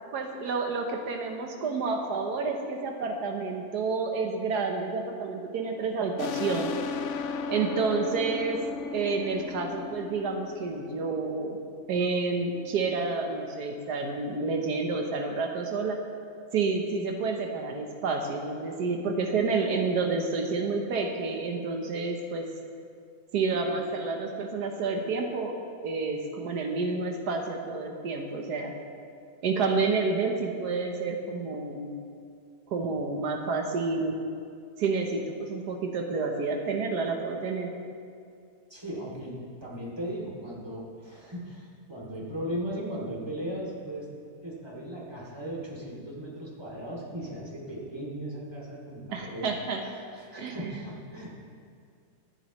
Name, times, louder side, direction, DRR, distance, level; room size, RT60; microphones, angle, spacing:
voice 1, 0.1-6.8 7.5-8.6 8.9-11.6 11.9-16.0 16.5-22.5 23.3-25.6 25.8-28.7 29.4-31.9 32.7-34.2 34.8-37.7 49.1-49.8 50.4-50.8, right 4 dB, 90° right, 3 dB, 1.6 m, -29 dB
sound 1, 6.2-11.5, left 5 dB, 60° left, 0.8 m, -35 dB
voice 2, 38.7-44.1 44.4-49.5 49.8-51.3, equal, 15° right, -5 dB, 2.7 m, -37 dB
24.0 x 8.6 x 3.1 m, 2.3 s
omnidirectional pair, 1.7 m